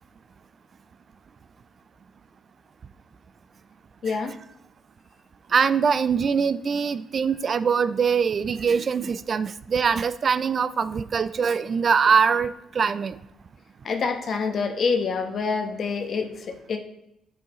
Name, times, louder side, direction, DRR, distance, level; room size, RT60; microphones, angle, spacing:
voice 1, 4.0-4.4 13.8-16.8, left 5 dB, 55° left, 5 dB, 1.0 m, -26 dB
voice 2, 5.5-13.2, right 6 dB, 50° right, 13 dB, 0.3 m, -23 dB
8.3 x 4.8 x 3.0 m, 0.82 s
cardioid pair, 90°, 0 cm